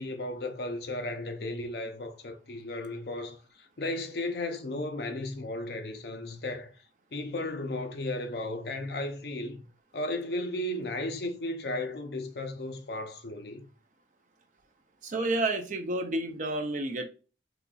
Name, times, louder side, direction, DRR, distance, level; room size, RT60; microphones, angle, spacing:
voice 1, 0.0-6.7 7.1-9.6 9.9-13.7, left 1 dB, 60° left, 0.6 m, -35 dB
voice 2, 15.0-17.0, right 2 dB, 45° right, 0.5 m, -30 dB
3.9 x 2.8 x 2.3 m
head